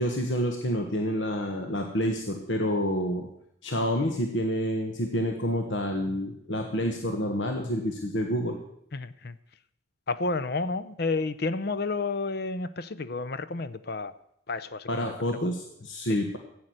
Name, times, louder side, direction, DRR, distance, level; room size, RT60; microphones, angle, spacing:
voice 1, 0.0-3.3 3.6-8.6 14.9-16.4, equal, 75° left, 4 dB, 1.3 m, -28 dB
voice 2, 8.9-9.3 10.1-14.1 14.5-15.0, left 3 dB, 55° left, 13 dB, 0.7 m, -30 dB
14.0 x 8.8 x 7.9 m, 0.76 s
head